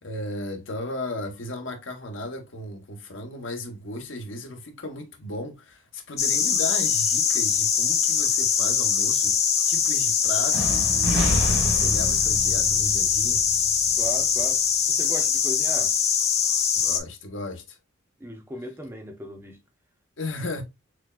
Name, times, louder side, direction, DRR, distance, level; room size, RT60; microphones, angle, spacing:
voice 1, 0.0-13.5 16.8-17.8 20.2-20.6, left 1 dB, 75° left, 0.9 m, -35 dB
sound 1, 6.2-17.0, left 7 dB, 30° left, 0.5 m, -22 dB
sound 2, 10.5-14.4, equal, 80° right, 1.3 m, -29 dB
voice 2, 14.0-14.6 14.9-16.0 18.2-19.6, right 1 dB, 10° right, 0.6 m, -36 dB
6.0 x 2.1 x 2.2 m
head